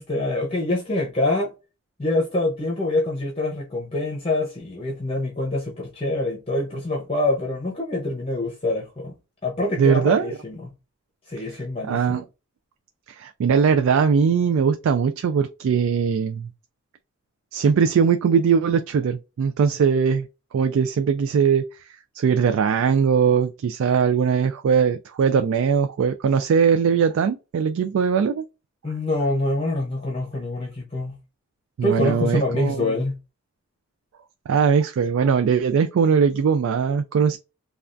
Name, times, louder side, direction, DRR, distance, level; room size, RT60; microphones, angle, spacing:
voice 1, 0.0-1.5 2.0-9.1 9.4-10.7 11.3-12.2 28.8-31.2 31.8-33.2, left 2 dB, 25° left, 0.7 m, -25 dB
voice 2, 9.8-10.4 11.8-12.2 13.2-16.5 17.5-20.3 20.5-21.6 22.1-28.5 31.8-33.0 34.5-37.4, right 6 dB, 75° right, 0.3 m, -20 dB
3.3 x 2.3 x 2.5 m
head